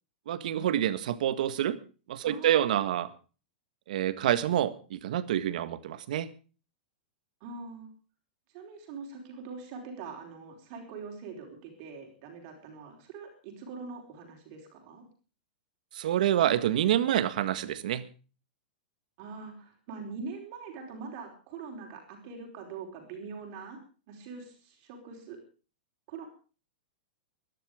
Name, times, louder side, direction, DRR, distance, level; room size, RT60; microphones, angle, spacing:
voice 1, 0.3-1.8 2.1-3.1 3.9-6.3 15.9-18.0, right 11 dB, 55° right, 13 dB, 1.6 m, -27 dB
voice 2, 2.2-3.0 7.4-7.9 8.5-15.0 19.2-23.8 24.1-25.4 26.1-26.3, right 5 dB, 30° right, 2 dB, 4.7 m, -43 dB
21.0 x 11.5 x 5.0 m, 0.37 s
supercardioid pair, 175°, 5 cm